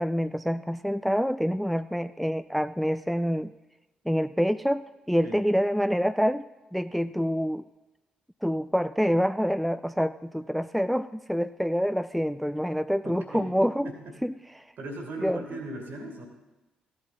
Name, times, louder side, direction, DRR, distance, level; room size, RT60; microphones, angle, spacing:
voice 1, 0.0-3.5 4.1-6.4 6.7-7.7 8.4-13.9 14.2-14.3 15.2-15.4, equal, ahead, 12 dB, 0.3 m, -26 dB
voice 2, 13.0-14.2 14.8-16.3, right 2 dB, 60° right, 3 dB, 2.1 m, -39 dB
15.0 x 8.4 x 4.1 m, 1.1 s
figure-of-eight pair, 40°, 4 cm